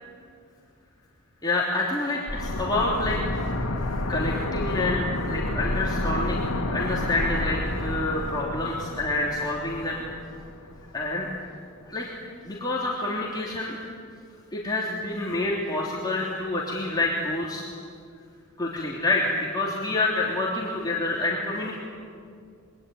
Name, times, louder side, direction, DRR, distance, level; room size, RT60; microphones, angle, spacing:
voice 1, 1.4-3.2 4.1-10.1 10.9-11.3 11.8-12.1 12.4-13.8 14.5-17.6 18.6-21.8, left 2 dB, 20° left, -5 dB, 3.2 m, -27 dB
sound 1, 2.3-11.0 11.3-11.4, left 1 dB, 70° left, 2.6 m, -30 dB
26.5 x 23.5 x 9.5 m, 2.3 s
head